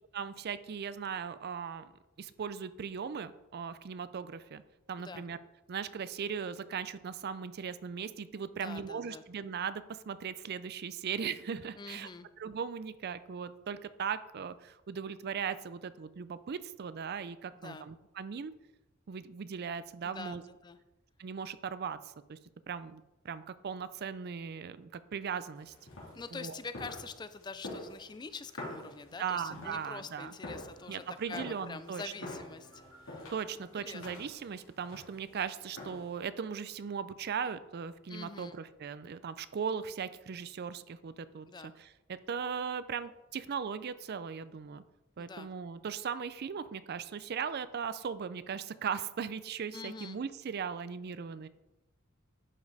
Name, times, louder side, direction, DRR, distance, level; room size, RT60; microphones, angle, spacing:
voice 1, 0.1-1.9 2.2-4.6 4.9-5.4 5.7-12.1 12.4-18.5 19.1-20.4 21.2-22.0 22.3-22.4 22.7-25.7 26.3-26.6 29.2-30.3 30.9-32.1 33.3-41.5 41.8-44.8 45.2-51.5, right 6 dB, 50° right, 14 dB, 0.4 m, -38 dB
voice 2, 8.6-9.2 11.7-12.3 17.5-17.9 20.0-20.8 26.1-33.3 33.5-34.3 38.1-38.6 41.5-41.7 45.2-45.5 49.7-50.2, left 4 dB, 20° left, 12 dB, 0.4 m, -45 dB
sound 1, 25.6-36.2, left 1 dB, 85° left, 3.2 m, -47 dB
sound 2, 30.7-34.0 36.8-36.9, right 1 dB, 75° right, 3.3 m, -62 dB
11.0 x 5.2 x 4.1 m, 0.97 s
head